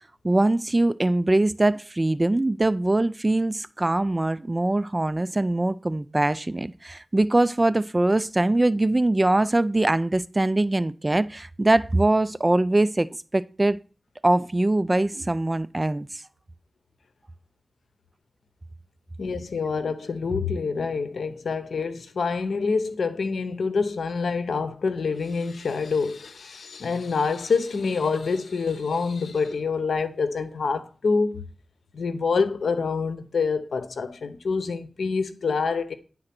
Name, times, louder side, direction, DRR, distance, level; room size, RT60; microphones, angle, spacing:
voice 1, 0.2-13.8 14.2-16.2, right 2 dB, 25° right, 0.3 m, -22 dB
voice 2, 19.2-31.4 31.9-35.9, left 4 dB, 85° left, 0.8 m, -26 dB
9.8 x 3.8 x 5.9 m
wide cardioid pair, 75°, 0 cm